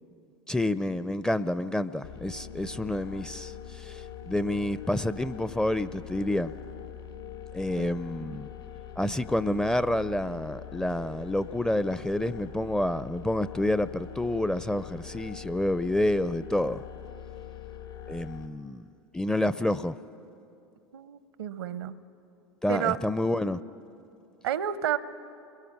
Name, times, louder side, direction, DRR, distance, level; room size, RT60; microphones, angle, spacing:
voice 1, 0.5-6.5 7.5-8.5 9.0-16.8 18.1-18.8 19.1-20.0 22.6-23.6, left 1 dB, 5° left, 15 dB, 0.5 m, -28 dB
sound 1, 2.0-18.5, left 9 dB, 80° left, 2.4 m, -43 dB
voice 2, 20.9-21.9 22.7-23.0 24.4-25.0, right 10 dB, 75° right, 16 dB, 0.8 m, -30 dB
29.5 x 21.5 x 5.9 m, 2.7 s
hypercardioid pair, 85°, 13 cm